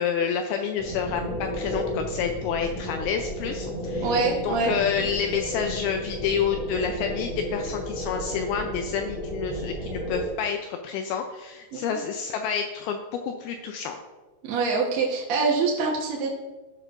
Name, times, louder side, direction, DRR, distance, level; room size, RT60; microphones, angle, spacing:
voice 1, 0.0-14.0, left 7 dB, 80° left, 5 dB, 2.3 m, -29 dB
sound 1, 0.8-10.3, equal, ahead, 1.7 m, -33 dB
voice 2, 4.0-5.1 11.7-11.8 14.4-16.3, right 4 dB, 65° right, -2 dB, 1.7 m, -25 dB
16.5 x 6.3 x 2.5 m, 1.2 s
omnidirectional pair, 4.6 m